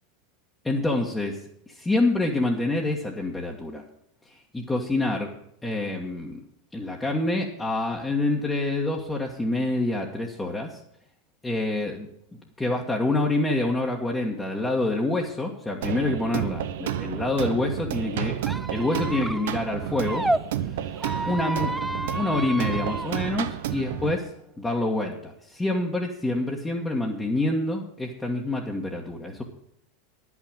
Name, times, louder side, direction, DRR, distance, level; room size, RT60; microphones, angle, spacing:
voice 1, 0.6-1.4 1.7-3.8 4.5-5.3 5.6-6.4 6.7-10.8 11.4-12.1 12.6-18.4 18.7-20.2 21.3-21.7 22.1-24.3 24.6-29.4, left 2 dB, 10° left, -3 dB, 1.6 m, -26 dB
sound 1, 15.8-24.2, right 10 dB, 70° right, 0.7 m, -31 dB
Squeak, 18.4-20.4 21.0-23.1, right 1 dB, 5° right, 0.4 m, -30 dB
sound 2, 21.1-25.0, right 9 dB, 50° right, 2.2 m, -45 dB
10.0 x 6.1 x 8.7 m, 0.74 s
hypercardioid pair, 90°, 0 cm